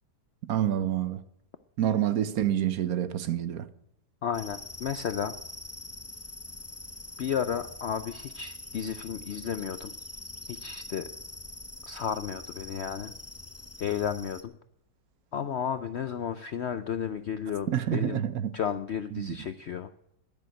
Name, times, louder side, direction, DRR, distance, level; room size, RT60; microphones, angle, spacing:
voice 1, 0.5-1.2 1.8-3.7 17.7-18.5 19.1-19.4, right 11 dB, 65° right, 1.1 m, -28 dB
voice 2, 4.2-5.4 7.2-9.9 10.5-11.1 11.8-13.1 13.8-14.5 15.3-18.2 18.5-19.9, left 8 dB, 65° left, 0.6 m, -33 dB
sound 1, 4.3-14.4, left 2 dB, 20° left, 0.3 m, -44 dB
10.5 x 10.5 x 7.8 m
omnidirectional pair, 1.8 m